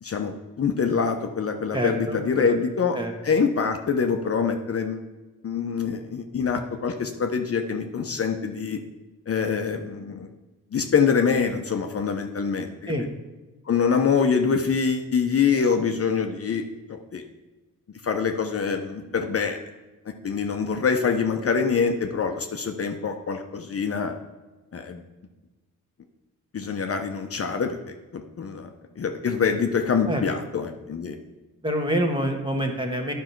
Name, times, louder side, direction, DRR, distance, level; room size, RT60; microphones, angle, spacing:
voice 1, 0.0-3.0 3.2-5.1 5.4-8.8 9.3-10.3 10.7-12.9 13.7-16.6 16.9-17.2 18.0-19.6 20.2-24.1 24.7-25.0 26.5-27.8 28.1-28.7 29.0-31.2, left 6 dB, 40° left, 4 dB, 0.8 m, -25 dB
voice 2, 1.7-2.5 2.9-3.4 12.9-13.1 30.1-30.2 31.6-33.1, equal, 15° right, 2 dB, 1.5 m, -27 dB
10.5 x 5.6 x 4.5 m, 1.2 s
cardioid pair, 85°, 34 cm